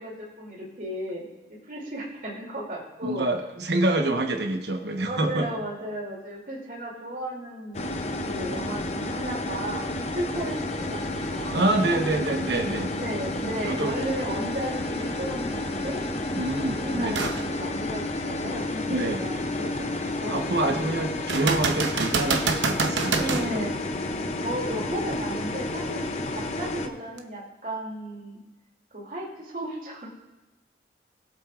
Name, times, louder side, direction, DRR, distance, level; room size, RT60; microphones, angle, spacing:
voice 1, 0.0-3.3 4.1-4.2 5.0-12.0 12.9-16.0 16.7-20.4 23.2-23.9 24.4-28.4 28.9-30.1, right 1 dB, 50° right, -3 dB, 3.0 m, -35 dB
voice 2, 3.0-5.5 11.5-12.9 13.7-13.9 16.3-17.2 18.9-19.2 20.3-23.6, right 2 dB, 70° right, 4 dB, 1.2 m, -26 dB
sound 1, 7.7-26.9, left 2 dB, 35° left, 0.7 m, -31 dB
sound 2, 17.1-17.4 18.0-18.1 21.3-23.5 27.2-27.3, right 4 dB, 85° right, 0.9 m, -26 dB
19.5 x 8.2 x 2.5 m, 1.1 s
head